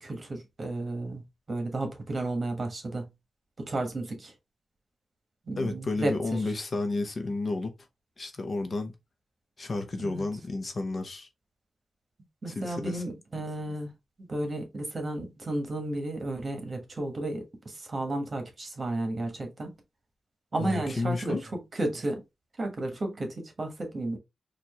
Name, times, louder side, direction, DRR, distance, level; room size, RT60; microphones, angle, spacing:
voice 1, 0.0-1.2 1.5-3.0 3.6-4.3 5.5-6.5 10.0-10.2 12.4-13.9 14.2-19.7 20.5-21.4 21.7-22.2 22.6-24.2, right 1 dB, 40° right, 1.3 m, -33 dB
voice 2, 5.6-7.7 8.2-8.9 9.6-11.3 12.5-13.0 20.6-21.4, left 3 dB, 45° left, 0.8 m, -31 dB
4.4 x 2.5 x 3.0 m
cardioid pair, 90°, 0 cm